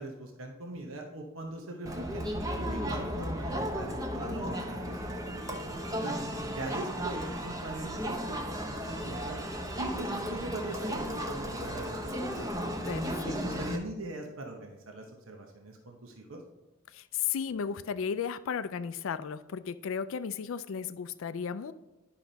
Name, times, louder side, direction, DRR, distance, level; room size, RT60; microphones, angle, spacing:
voice 1, 0.0-2.3 2.5-6.2 6.5-9.4 9.8-16.4, right 2 dB, 70° right, 2 dB, 0.9 m, -41 dB
Crowd, 1.9-13.8, equal, 15° right, 0.8 m, -35 dB
voice 2, 12.9-13.3 16.9-21.7, left 7 dB, 65° left, 13 dB, 0.4 m, -34 dB
10.5 x 5.9 x 4.0 m, 1.1 s
head